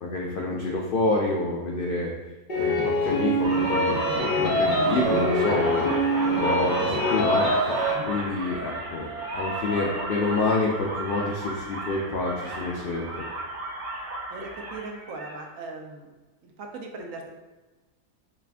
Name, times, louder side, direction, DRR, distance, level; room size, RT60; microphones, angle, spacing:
voice 1, 0.0-2.1 2.5-4.0 4.4-5.9 6.4-9.1 9.3-13.2, left 2 dB, 80° left, -2 dB, 0.4 m, -28 dB
sound 1, 2.5-8.0, equal, 40° left, 0.9 m, -24 dB
sound 2, 3.4-15.4, right 2 dB, 85° right, 1.3 m, -33 dB
voice 2, 14.3-16.1 16.4-17.3, right 3 dB, 70° right, 2 dB, 0.9 m, -39 dB
4.9 x 2.4 x 3.3 m, 1.2 s
omnidirectional pair, 1.5 m